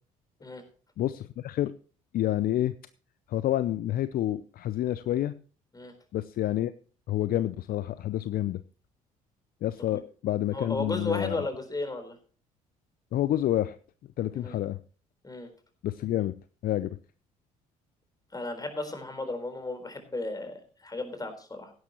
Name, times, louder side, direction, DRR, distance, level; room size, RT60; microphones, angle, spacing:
voice 1, 1.0-1.7 2.1-2.7 3.3-5.3 6.1-6.7 7.1-8.6 9.6-11.4 13.1-13.8 14.2-14.8 15.8-16.3 16.6-17.0, left 13 dB, 55° left, 15 dB, 0.6 m, -28 dB
voice 2, 10.5-12.1 14.3-14.6 15.2-15.5 18.3-21.7, left 2 dB, 20° left, 7 dB, 4.2 m, -34 dB
16.5 x 11.0 x 3.0 m, 0.39 s
hypercardioid pair, 55°, 18 cm